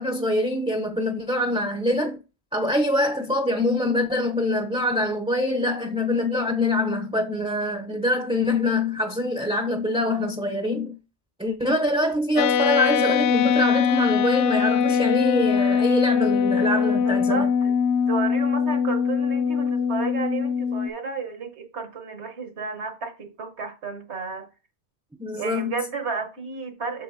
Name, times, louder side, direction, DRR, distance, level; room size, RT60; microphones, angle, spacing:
voice 1, 0.0-2.2 2.5-11.0 11.4-17.5 25.2-25.8, left 1 dB, 5° right, 0.5 m, -24 dB
sound 1, 12.4-20.9, left 7 dB, 80° left, 0.9 m, -22 dB
voice 2, 16.9-17.8 18.1-24.5 25.4-27.0, right 5 dB, 70° right, 1.5 m, -32 dB
7.5 x 6.5 x 2.7 m
omnidirectional pair, 1.2 m